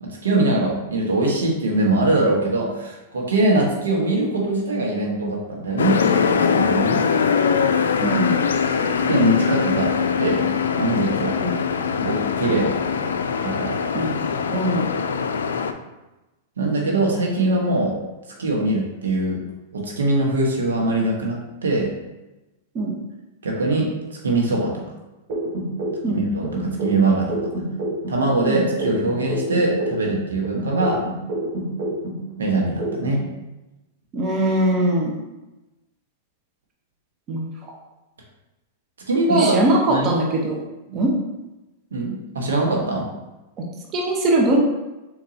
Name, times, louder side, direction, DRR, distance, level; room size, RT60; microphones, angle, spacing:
voice 1, 0.0-7.0 9.1-10.5 10.8-11.4 12.0-12.7 13.4-13.8 16.6-18.0 18.4-19.4 19.7-21.9 23.4-23.9 24.2-24.8 26.1-27.4 28.1-31.0 32.4-33.2 39.1-39.6 39.9-40.1 40.9-41.0 41.9-43.0, right 2 dB, 85° right, 0 dB, 1.1 m, -22 dB
sound 1, 5.8-15.7, left 6 dB, 80° left, 0.3 m, -22 dB
voice 2, 8.0-8.4 11.4-11.6 13.9-14.2 14.5-14.9 22.7-23.0 26.0-26.2 28.5-28.6 34.1-35.1 37.3-37.5 39.3-40.6 40.9-41.2 43.9-44.6, right 1 dB, 35° right, 0 dB, 0.9 m, -21 dB
sound 2, 25.3-28.2 28.5-32.2 32.5-33.2, right 1 dB, 55° right, 1.1 m, -28 dB
4.4 x 4.1 x 2.7 m, 1.0 s
hypercardioid pair, 110°, 0 cm